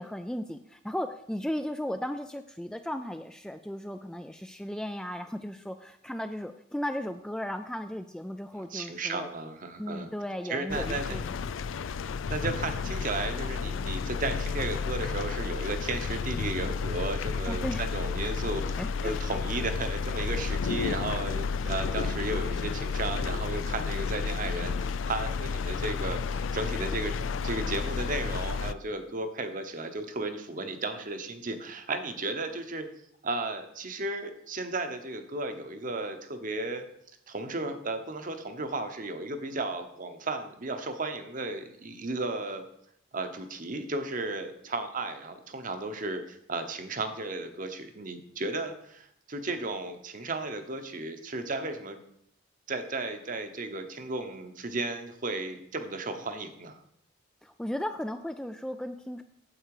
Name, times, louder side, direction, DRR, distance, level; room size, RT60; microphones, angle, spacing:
voice 1, 0.0-9.3 9.8-11.2 17.4-17.8 18.8-19.2 57.4-59.2, equal, 5° left, 7 dB, 0.3 m, -36 dB
voice 2, 8.5-10.1 10.5-11.2 12.3-32.9 33.2-36.9 37.3-42.6 43.1-52.0 52.7-56.8, right 2 dB, 45° right, 7 dB, 1.0 m, -34 dB
sound 1, 10.7-28.7, left 5 dB, 85° left, 0.4 m, -31 dB
8.8 x 7.9 x 4.9 m, 0.73 s
head